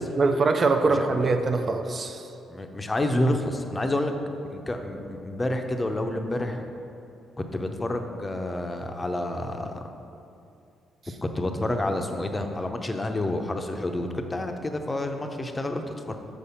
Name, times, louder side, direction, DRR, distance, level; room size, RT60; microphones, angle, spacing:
voice 1, 0.2-2.3, right 3 dB, 40° right, 6 dB, 0.6 m, -23 dB
voice 2, 0.9-1.3 2.5-4.1 4.5-6.7 7.5-9.9 11.2-16.2, left 1 dB, 20° left, 5 dB, 0.7 m, -29 dB
6.7 x 5.1 x 5.6 m, 2.7 s
cardioid pair, 90°, 0 cm